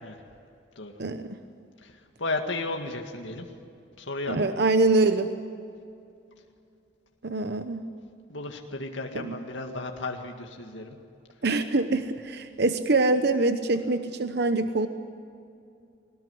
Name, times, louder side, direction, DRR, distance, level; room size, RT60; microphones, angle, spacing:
voice 1, 1.0-1.4 4.3-5.3 7.2-7.8 9.1-9.3 11.4-14.9, right 2 dB, 60° right, 9 dB, 1.0 m, -24 dB
voice 2, 1.8-3.5 4.0-4.5 8.3-11.0, left 2 dB, 85° left, 2 dB, 2.0 m, -34 dB
22.0 x 19.5 x 9.7 m, 2.5 s
head